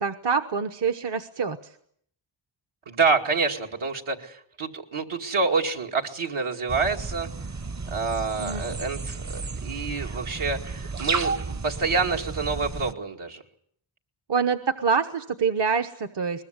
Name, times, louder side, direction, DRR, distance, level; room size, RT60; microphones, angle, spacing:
voice 1, 0.0-1.6 8.4-8.7 14.3-16.4, right 5 dB, 55° right, 9 dB, 1.1 m, -26 dB
voice 2, 2.9-7.3 7.9-13.4, right 4 dB, 80° right, 1 dB, 2.4 m, -27 dB
sound 1, 6.7-12.9, right 4 dB, 35° right, 0.9 m, -32 dB
22.0 x 20.5 x 8.1 m, 0.67 s
wide cardioid pair, 85°, 50 cm